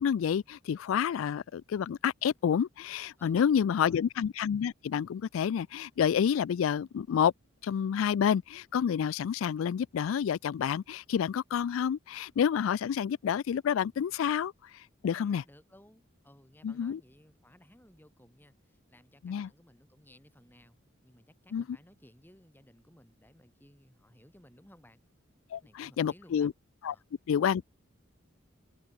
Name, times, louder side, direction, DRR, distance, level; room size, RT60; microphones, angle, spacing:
voice 1, 0.0-7.3 7.6-15.4 16.6-17.0 19.2-19.5 21.5-21.6 25.5-26.5 26.8-26.9 27.3-27.7, left 8 dB, 80° left, 0.3 m, -29 dB
voice 2, 3.2-4.1 15.1-25.0 25.6-26.5 26.8-27.0, left 1 dB, 10° left, 3.7 m, -59 dB
head